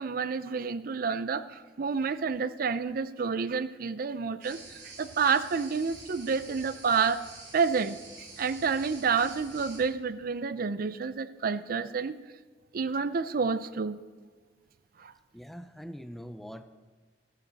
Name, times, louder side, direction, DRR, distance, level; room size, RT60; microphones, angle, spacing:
voice 1, 0.0-7.2 7.5-12.1 12.7-14.0 15.0-15.1, right 5 dB, 55° right, 14 dB, 0.5 m, -29 dB
sound 1, 4.4-9.8, right 3 dB, 75° right, 3.7 m, -48 dB
voice 2, 15.3-16.6, equal, ahead, 9 dB, 0.5 m, -43 dB
14.5 x 14.0 x 4.0 m, 1.4 s
head